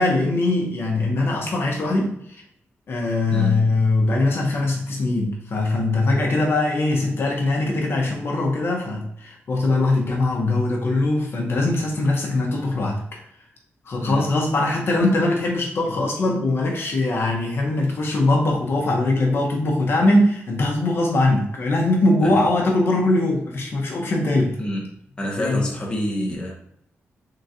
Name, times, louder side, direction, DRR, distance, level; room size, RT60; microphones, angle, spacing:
voice 1, 0.0-2.4 2.9-13.2 13.9-24.6 25.4-25.6, left 2 dB, 60° left, -1 dB, 0.9 m, -21 dB
voice 2, 3.3-3.7 14.0-14.3 22.2-22.4 24.6-24.9 25.2-26.5, equal, 20° left, -2 dB, 1.0 m, -27 dB
3.8 x 3.8 x 2.7 m, 0.73 s
wide cardioid pair, 130°, 5 cm